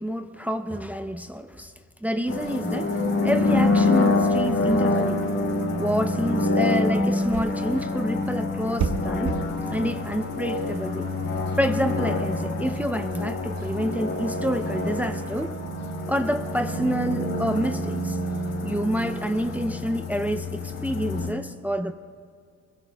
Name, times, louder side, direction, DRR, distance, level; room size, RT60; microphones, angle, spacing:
voice 1, 0.0-1.7 2.0-3.0 3.2-5.3 5.8-9.4 9.7-11.1 11.6-15.6 16.1-18.2 18.6-21.9, equal, 5° right, 7 dB, 0.7 m, -28 dB
sound 1, 2.3-21.3, left 2 dB, 55° left, 2.5 m, -26 dB
sound 2, 3.2-15.5, right 5 dB, 85° right, 1.5 m, -38 dB
25.0 x 22.0 x 2.3 m, 2.3 s
cardioid pair, 90°, 30 cm